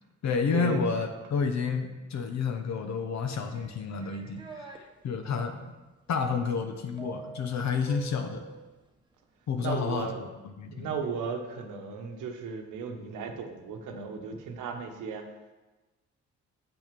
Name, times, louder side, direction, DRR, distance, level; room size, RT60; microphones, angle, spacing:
voice 1, 0.2-5.6 6.1-8.4 9.5-10.1 10.4-11.0, left 5 dB, 65° left, 5 dB, 0.9 m, -30 dB
sound 1, 3.5-4.8 7.0-8.6, right 3 dB, 15° right, 1.0 m, -44 dB
voice 2, 9.6-15.3, right 5 dB, 80° right, 4 dB, 1.1 m, -36 dB
6.9 x 6.1 x 5.3 m, 1.1 s
cardioid pair, 90°, 30 cm